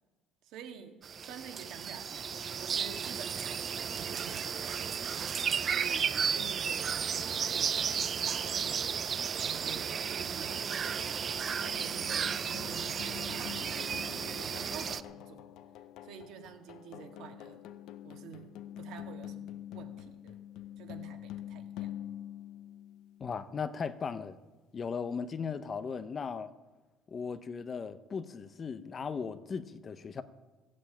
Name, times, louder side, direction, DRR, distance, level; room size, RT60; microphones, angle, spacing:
voice 1, 0.4-8.7 9.4-11.3 11.6-13.8 14.3-15.5 16.0-17.6 18.0-18.5 18.8-20.4 20.8-21.9, right 8 dB, 65° right, 5 dB, 1.8 m, -49 dB
sound 1, 1.0-15.0, right 7 dB, 35° right, 0.5 m, -33 dB
sound 2, 9.2-23.4, left 12 dB, 65° left, 0.7 m, -46 dB
voice 2, 23.2-24.4 24.7-26.5 27.1-30.2, left 5 dB, 30° left, 12 dB, 0.7 m, -37 dB
14.5 x 8.5 x 8.7 m, 1.2 s
cardioid pair, 145°, 0 cm